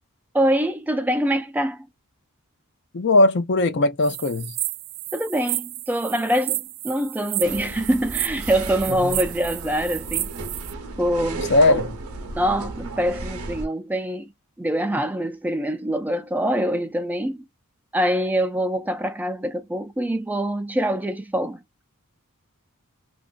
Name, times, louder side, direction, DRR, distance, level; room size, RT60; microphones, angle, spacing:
voice 1, 0.3-1.9 5.1-10.3 11.0-11.8 12.3-14.3 14.6-17.4 17.9-21.6, equal, 10° right, 0.4 m, -24 dB
voice 2, 2.9-4.5 9.0-9.1 11.5-11.9, left 2 dB, 50° left, 0.5 m, -19 dB
sound 1, 4.0-10.7, right 18 dB, 90° right, 0.3 m, -31 dB
sound 2, 7.4-13.7, right 2 dB, 70° right, 0.8 m, -34 dB
3.0 x 2.4 x 2.4 m
head